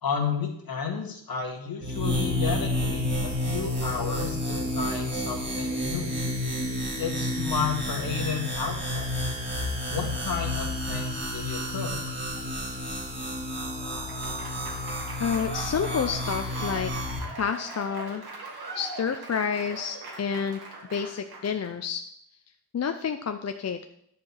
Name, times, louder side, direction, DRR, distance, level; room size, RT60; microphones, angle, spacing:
voice 1, 0.0-6.1 7.0-9.1 9.9-12.1, left 6 dB, 60° left, 2 dB, 2.0 m, -32 dB
sound 1, 1.8-17.2, left 1 dB, 30° right, 2.1 m, -30 dB
Applause / Crowd, 13.5-21.7, right 2 dB, 70° right, 1.9 m, -41 dB
voice 2, 15.2-16.9 17.4-18.2 18.7-20.6 20.9-22.0 22.7-23.8, left 6 dB, 40° left, 7 dB, 0.5 m, -29 dB
10.5 x 4.8 x 7.2 m, 0.73 s
wide cardioid pair, 165°, 40 cm